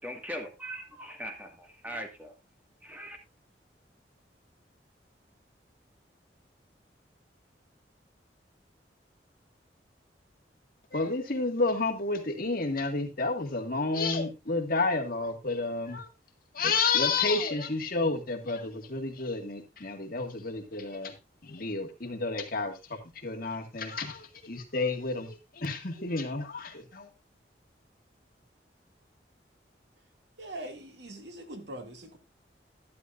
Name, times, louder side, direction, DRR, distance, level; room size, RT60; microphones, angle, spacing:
voice 1, 0.0-2.3 2.8-3.2, equal, 10° right, 2.0 m, -40 dB
voice 2, 10.9-16.1 16.5-21.1 21.4-27.1, left 3 dB, 50° left, 2.0 m, -30 dB
voice 3, 30.4-32.2, right 1 dB, 75° right, 2.4 m, -42 dB
12.0 x 12.0 x 2.6 m
head